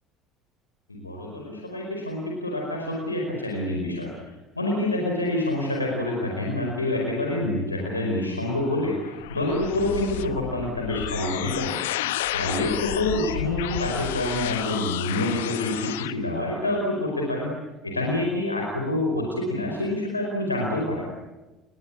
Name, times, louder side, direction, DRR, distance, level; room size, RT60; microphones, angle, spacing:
voice 1, 0.9-4.1 4.5-11.8 12.3-17.5 17.8-21.1, left 1 dB, 90° left, 0 dB, 5.0 m, -27 dB
sound 1, 8.4-16.1, left 15 dB, 70° left, 1.2 m, -32 dB
30.0 x 23.0 x 8.7 m, 1.1 s
figure-of-eight pair, 60°, 0 cm